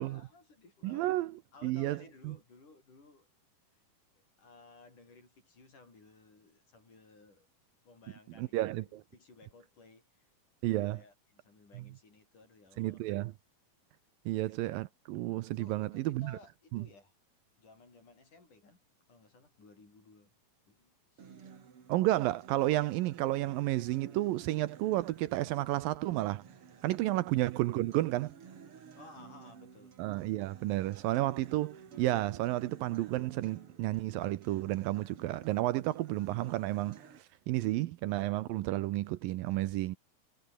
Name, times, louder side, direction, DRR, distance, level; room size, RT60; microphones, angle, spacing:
voice 1, 0.0-1.2 1.5-3.3 3.7-3.8 4.2-7.5 7.8-10.3 10.8-13.0 14.3-14.6 15.6-17.1 17.6-18.8 19.1-20.3 20.7-21.7 27.1-27.3 29.0-30.0, left 3 dB, 55° left, 9.5 m, -58 dB
voice 2, 0.8-1.3 1.6-2.0 2.2-2.3 8.4-9.0 10.6-11.0 11.8-11.9 12.8-13.3 14.3-16.4 16.7-16.8 21.9-26.4 26.8-28.3 30.0-40.0, right 16 dB, 75° right, 2.4 m, -31 dB
Acoustic guitar, 21.2-37.2, right 6 dB, 40° right, 2.9 m, -53 dB
omnidirectional pair, 4.3 m